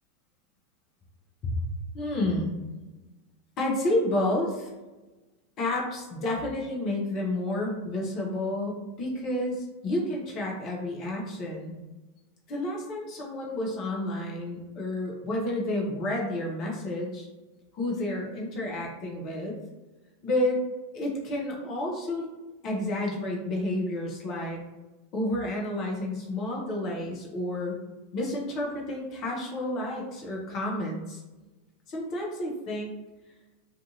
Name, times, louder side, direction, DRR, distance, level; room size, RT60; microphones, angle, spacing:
voice 1, 1.9-2.5 3.6-4.7 5.6-11.7 12.5-17.3 17.7-19.6 20.2-20.6 20.9-22.3 22.6-24.6 25.1-27.8 28.1-31.2 31.9-32.9, left 1 dB, 35° left, -1 dB, 0.7 m, -30 dB
2.5 x 2.5 x 2.6 m, 1.2 s
figure-of-eight pair, 90°, 0 cm